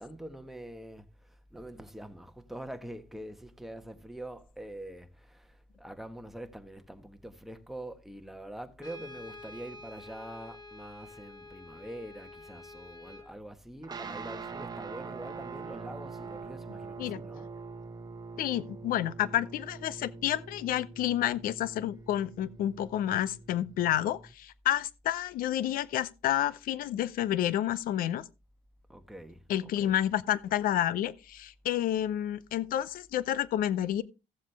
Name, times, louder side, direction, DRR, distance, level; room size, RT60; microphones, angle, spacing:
voice 1, 0.0-17.6 28.9-30.0, right 1 dB, ahead, 1.5 m, -45 dB
Brass instrument, 8.8-13.4, left 2 dB, 25° left, 2.4 m, -48 dB
sound 1, 13.8-24.3, right 4 dB, 25° right, 1.2 m, -44 dB
voice 2, 18.4-28.2 29.5-34.0, left 12 dB, 70° left, 0.7 m, -30 dB
15.5 x 7.3 x 3.4 m
supercardioid pair, 80°, 15 cm